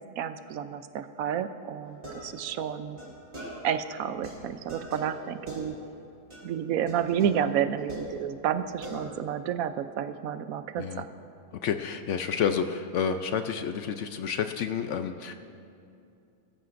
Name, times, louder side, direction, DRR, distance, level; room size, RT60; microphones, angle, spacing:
voice 1, 0.2-3.0 3.6-5.8 6.4-11.1, right 9 dB, 75° right, 11 dB, 1.0 m, -30 dB
sound 1, 1.8-3.9 4.2-6.0 6.3-6.6 6.9-8.6 8.8-9.4, right 1 dB, 35° right, 3.6 m, -44 dB
voice 2, 11.6-15.3, left 7 dB, 65° left, 8 dB, 0.8 m, -29 dB
21.5 x 13.5 x 2.5 m, 2.6 s
omnidirectional pair, 1.6 m